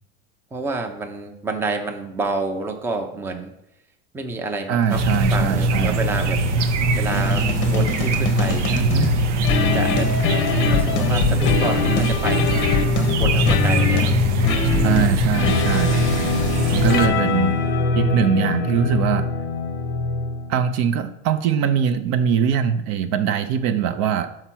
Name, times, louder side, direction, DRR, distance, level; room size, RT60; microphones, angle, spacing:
voice 1, 0.5-3.5 4.1-5.0 5.3-6.4 7.0-8.7 9.7-12.7 12.9-14.1, right 3 dB, 5° right, 5 dB, 0.5 m, -29 dB
voice 2, 4.7-6.0 8.7-9.1 14.6-16.0 16.7-17.6 17.9-19.3 20.5-24.3, right 8 dB, 50° right, 9 dB, 0.6 m, -22 dB
sound 1, 4.9-17.1, right 2 dB, 85° right, 0.8 m, -22 dB
sound 2, 7.1-20.6, left 5 dB, 35° left, 0.7 m, -23 dB
5.8 x 4.5 x 5.9 m, 0.85 s
supercardioid pair, 130°, 34 cm